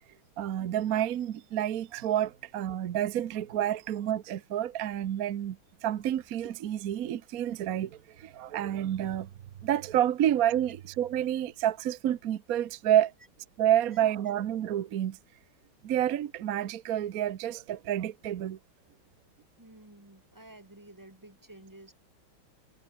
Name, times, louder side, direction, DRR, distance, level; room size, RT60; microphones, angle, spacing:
voice 1, 0.4-5.6 5.8-9.3 9.6-13.1 13.6-15.2 15.8-18.6, right 11 dB, 55° right, 1.1 m, -29 dB
voice 2, 19.6-21.9, right 1 dB, 10° right, 2.4 m, -52 dB
omnidirectional pair, 2.2 m